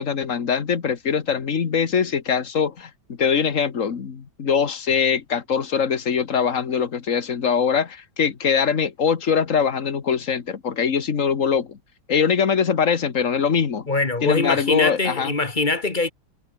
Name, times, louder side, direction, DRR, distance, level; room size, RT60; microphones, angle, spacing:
voice 1, 0.0-11.8 12.1-13.9 14.2-15.3, left 6 dB, 40° left, 1.8 m, -22 dB
voice 2, 13.9-16.1, left 3 dB, 25° left, 1.7 m, -23 dB
omnidirectional pair, 2.1 m